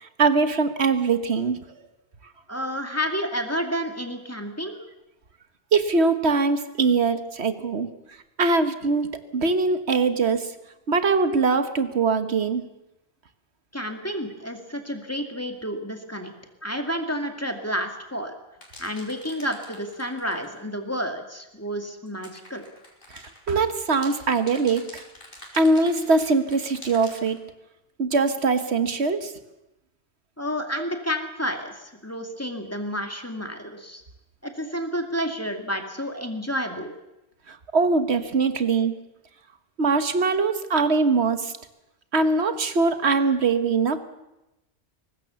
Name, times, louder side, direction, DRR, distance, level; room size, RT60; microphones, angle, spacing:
voice 1, 0.0-1.6 5.7-7.9 8.4-10.5 10.9-12.6 23.1-25.0 25.5-27.4 28.0-29.3 37.5-38.9 39.8-41.5 42.1-44.0, right 4 dB, 85° right, 10 dB, 1.6 m, -22 dB
voice 2, 2.5-4.7 13.7-16.3 16.6-18.3 18.8-22.6 30.4-34.0 34.4-36.9, equal, 15° left, 4 dB, 2.3 m, -30 dB
sound 1, 18.6-20.6 22.1-27.4, left 1 dB, 55° left, 4.8 m, -45 dB
23.0 x 19.0 x 7.0 m, 0.93 s
omnidirectional pair, 1.1 m